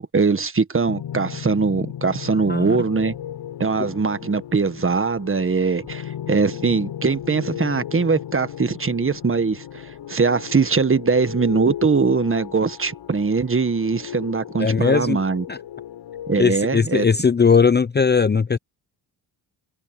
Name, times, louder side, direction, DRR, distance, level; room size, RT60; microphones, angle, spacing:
voice 1, 0.0-3.1 3.6-15.4 16.3-17.0, right 4 dB, 30° right, 1.6 m, -21 dB
sound 1, 0.9-16.5, left 10 dB, 70° left, 6.5 m, -35 dB
voice 2, 2.5-2.8 14.6-15.2 15.5-15.6 16.4-18.6, left 5 dB, 20° left, 0.7 m, -18 dB
supercardioid pair, 65°, 45 cm